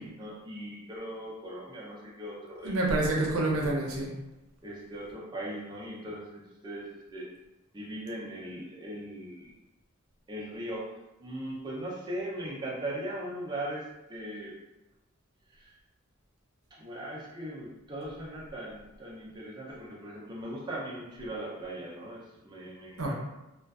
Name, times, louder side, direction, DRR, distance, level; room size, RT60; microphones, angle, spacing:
voice 1, 0.0-3.1 4.6-7.3 7.7-9.5 10.3-10.8 11.2-14.5 15.5-15.7 16.7-23.1, right 1 dB, 20° right, -5 dB, 0.4 m, -39 dB
voice 2, 2.6-4.1 23.0-23.1, right 2 dB, 80° right, -2 dB, 0.6 m, -27 dB
2.5 x 2.2 x 2.3 m, 0.99 s
head